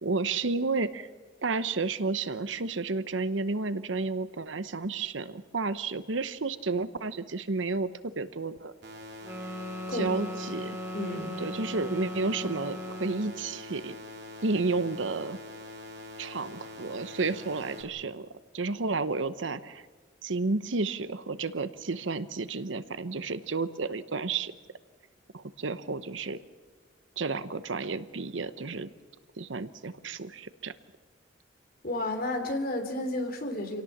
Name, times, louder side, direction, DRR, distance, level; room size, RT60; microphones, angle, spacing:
voice 1, 0.0-1.1 1.4-7.9 8.2-8.7 9.9-10.8 11.4-14.0 14.4-15.4 16.2-18.3 18.5-19.8 20.2-24.5 25.3-26.4 27.2-28.9 29.4-30.7, right 3 dB, 80° right, 14 dB, 0.9 m, -31 dB
sound 1, 8.8-17.8, left 1 dB, 60° right, 3.2 m, -44 dB
sound 2, 9.2-13.4, left 1 dB, 10° right, 1.8 m, -38 dB
voice 2, 10.9-11.3 31.8-33.8, left 1 dB, 50° left, 5 dB, 3.1 m, -31 dB
27.0 x 17.5 x 7.3 m, 1.3 s
head